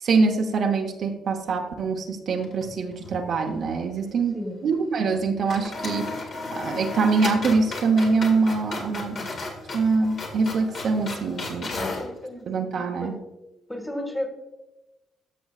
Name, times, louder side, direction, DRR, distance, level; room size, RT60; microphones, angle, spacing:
voice 1, 0.0-4.4 4.6-6.1 6.5-9.2 9.7-11.8 12.5-13.1, right 4 dB, 60° right, 3 dB, 0.9 m, -24 dB
sound 1, 2.4-3.2 3.5-3.6 5.1-5.2 5.5-12.1, left 3 dB, 55° left, 1.8 m, -34 dB
voice 2, 8.8-9.3 11.7-12.5 13.0-13.2 13.7-14.3, left 1 dB, 10° left, 4 dB, 1.7 m, -34 dB
13.0 x 6.1 x 2.4 m, 0.99 s
cardioid pair, 90°, 0 cm